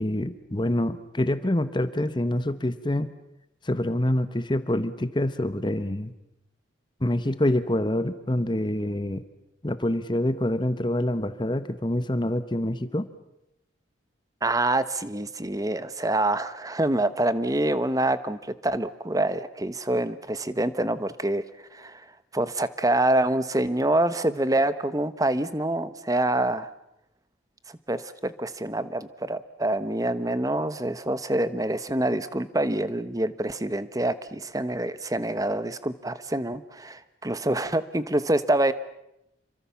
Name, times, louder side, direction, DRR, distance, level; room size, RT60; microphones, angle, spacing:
voice 1, 0.0-3.1 3.6-6.1 7.0-9.2 9.6-13.1, left 1 dB, 25° left, 12 dB, 1.0 m, -26 dB
voice 2, 14.4-21.4 21.7-22.0 22.3-26.7 27.7-38.7, right 1 dB, 20° right, 14 dB, 1.1 m, -26 dB
27.5 x 24.5 x 7.1 m, 0.85 s
head